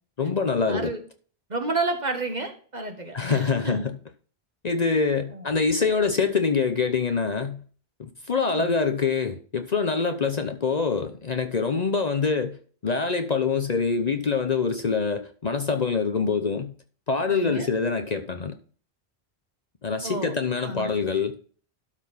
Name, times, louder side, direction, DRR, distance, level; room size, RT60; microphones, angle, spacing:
voice 1, 0.2-0.9 3.1-3.9 4.6-7.6 8.0-12.6 12.8-16.7 17.1-18.6 19.8-21.4, left 5 dB, 45° left, 0.8 m, -25 dB
voice 2, 0.7-1.0 1.5-3.9 5.3-5.4 8.4-8.7 17.3-17.7 20.0-20.9, right 2 dB, 45° right, 1.6 m, -31 dB
12.0 x 4.4 x 5.5 m
omnidirectional pair, 1.1 m